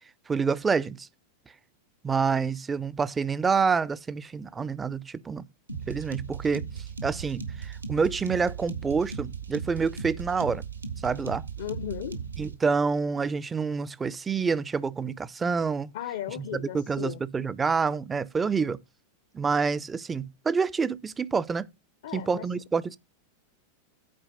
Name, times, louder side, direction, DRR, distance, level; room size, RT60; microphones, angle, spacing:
voice 1, 0.3-1.1 2.0-5.5 5.9-6.7 7.0-10.6 11.0-11.4 12.4-15.9 16.4-18.8 19.3-21.7 22.1-23.0, right 5 dB, 15° right, 0.5 m, -27 dB
sound 1, 5.7-12.5, right 6 dB, 75° right, 1.4 m, -37 dB
voice 2, 11.6-12.2 15.9-17.2 22.0-22.5, left 11 dB, 55° left, 0.6 m, -36 dB
8.8 x 4.6 x 6.5 m
figure-of-eight pair, 90°, 0 cm